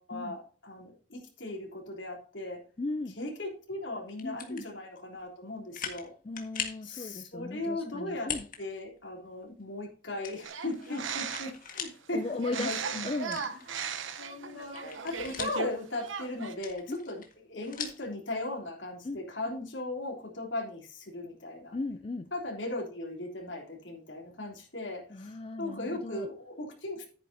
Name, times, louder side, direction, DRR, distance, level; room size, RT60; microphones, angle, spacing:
voice 1, 0.0-2.6 3.2-6.1 6.8-8.3 8.6-13.1 14.2-17.2 17.5-21.8 22.3-27.1, left 2 dB, 70° left, 3.4 m, -38 dB
voice 2, 2.8-3.2 4.2-4.6 6.2-8.5 12.1-13.4 16.9-17.1 19.0-19.2 21.7-22.3 25.1-26.3, left 2 dB, 30° left, 0.4 m, -37 dB
sound 1, 4.1-4.6 5.2-5.3 5.7-6.1 6.4-6.8 8.2-8.6 9.0-9.1 10.2-12.0 12.4-12.5 13.2-14.1 14.5-15.7 16.5-18.1, left 7 dB, 45° left, 1.7 m, -40 dB
sound 2, 10.4-11.7 12.4-15.7 16.0-16.5, right 6 dB, 80° right, 1.0 m, -37 dB
11.0 x 9.5 x 2.8 m
head